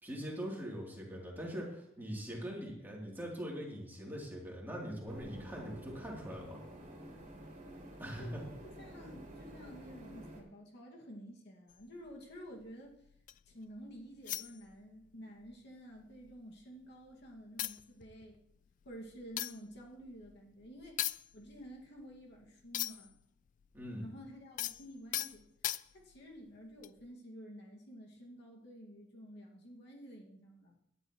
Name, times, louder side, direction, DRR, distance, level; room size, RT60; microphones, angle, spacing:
voice 1, 0.0-6.6 8.0-8.4 23.7-24.1, equal, 10° right, -4 dB, 3.3 m, -42 dB
sound 1, 5.1-10.4, right 1 dB, 40° right, 3.1 m, -50 dB
voice 2, 8.8-12.9 13.5-18.4 18.8-23.1 24.0-30.8, equal, 60° left, -1 dB, 2.2 m, -51 dB
sound 2, 11.7-13.5 14.2-15.1 15.4-15.6 15.9-16.8 17.2-17.3 17.6-23.2 23.5-26.2 26.8-27.1, left 13 dB, 40° left, 0.3 m, -41 dB
17.5 x 10.5 x 3.2 m, 0.76 s
head